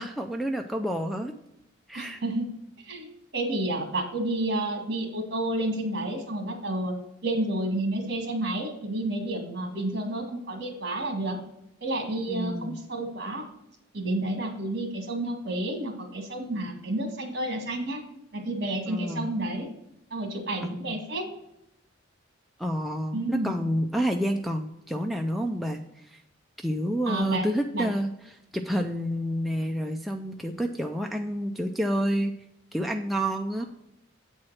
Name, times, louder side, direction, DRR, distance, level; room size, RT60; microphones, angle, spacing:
voice 1, 0.0-1.3 1.9-2.2 12.3-12.8 18.9-19.3 20.6-21.0 22.6-26.2 26.6-32.4 32.7-33.6, equal, ahead, 2 dB, 0.4 m, -29 dB
voice 2, 1.9-2.5 2.8-7.0 7.2-11.4 11.8-13.5 13.9-18.0 18.3-19.7 20.1-21.3 23.1-23.6 27.1-27.5 27.7-27.9 33.6-33.7, right 1 dB, 55° right, 3 dB, 1.9 m, -30 dB
8.5 x 4.4 x 6.3 m, 0.85 s
head